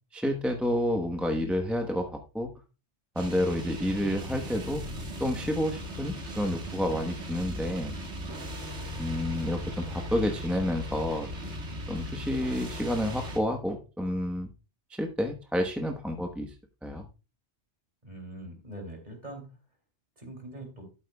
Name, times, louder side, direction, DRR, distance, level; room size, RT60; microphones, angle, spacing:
voice 1, 0.1-2.5 3.1-4.8 5.2-8.0 9.0-11.3 11.9-14.5 15.0-16.5 16.8-17.1, left 1 dB, ahead, 3 dB, 0.9 m, -29 dB
sound 1, 3.2-13.4, equal, 85° right, 2.0 m, -38 dB
voice 2, 18.0-19.6 20.2-20.8, right 1 dB, 40° right, 4 dB, 3.0 m, -43 dB
12.0 x 8.5 x 2.3 m, 0.31 s
omnidirectional pair, 1.2 m